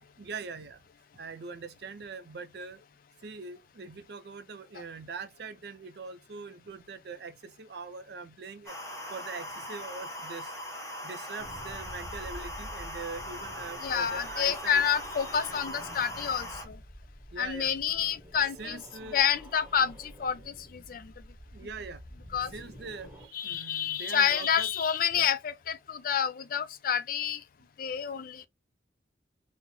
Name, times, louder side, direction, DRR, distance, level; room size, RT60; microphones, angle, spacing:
voice 1, 0.2-0.8 1.1-2.8 3.2-8.7 9.1-10.5 11.0-14.9 17.3-17.7 18.6-19.2 21.5-22.0 22.5-24.7 25.1-25.3, right 4 dB, 60° right, 0.4 m, -42 dB
sound 1, 8.7-16.7, equal, 15° left, 0.6 m, -40 dB
sound 2, 11.4-23.3, equal, 10° right, 1.1 m, -48 dB
voice 2, 13.8-16.8 17.4-18.8 19.1-20.4 20.9-21.1 22.3-22.5 23.3-27.4 27.8-28.5, left 8 dB, 50° left, 0.3 m, -28 dB
3.7 x 2.0 x 2.9 m
head